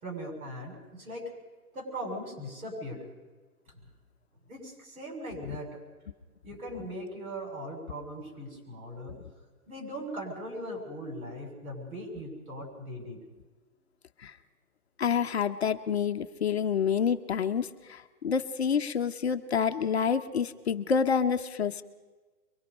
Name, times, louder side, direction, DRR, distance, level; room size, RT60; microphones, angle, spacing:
voice 1, 0.0-1.3 1.7-3.0 3.7-3.8 4.5-5.8 6.4-9.2 9.7-13.2, equal, 70° right, 2 dB, 6.7 m, -39 dB
voice 2, 15.0-21.8, left 7 dB, 45° left, 8 dB, 0.8 m, -28 dB
23.5 x 21.5 x 5.3 m, 1.3 s
hypercardioid pair, 175°, 45 cm